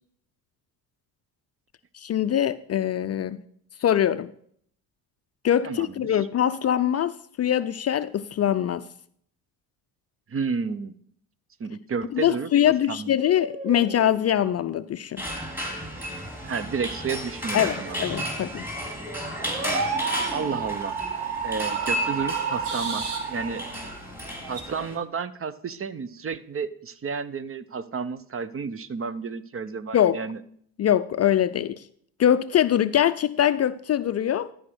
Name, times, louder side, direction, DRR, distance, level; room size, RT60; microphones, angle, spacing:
voice 1, 1.9-3.4 3.8-4.3 5.4-8.9 12.1-15.2 17.5-18.7 29.9-30.2 30.8-31.9 32.2-34.5, left 10 dB, 35° left, 13 dB, 0.5 m, -23 dB
voice 2, 10.3-10.9 11.6-13.1 16.4-18.0 20.3-21.0 21.4-23.0 23.3-23.6 24.5-30.4, right 5 dB, 30° right, 16 dB, 0.8 m, -31 dB
sound 1, 13.1-14.4 18.7-24.6, right 5 dB, 85° right, 1.8 m, -31 dB
sound 2, 15.2-25.0, equal, 5° right, 3.6 m, -33 dB
12.5 x 5.2 x 6.1 m, 0.63 s
hypercardioid pair, 60°, 44 cm